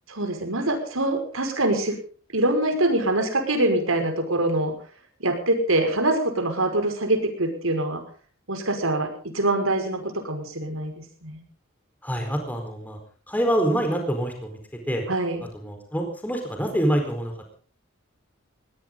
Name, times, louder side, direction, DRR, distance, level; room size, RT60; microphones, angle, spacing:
voice 1, 0.1-2.0 2.3-4.8 5.2-8.0 8.5-11.4 15.1-15.4, right 1 dB, 80° right, 6 dB, 5.5 m, -24 dB
voice 2, 12.0-13.0 13.3-14.6 14.9-15.0 15.5-17.6, right 1 dB, 10° left, 4 dB, 4.4 m, -26 dB
20.5 x 18.0 x 3.9 m, 0.41 s
head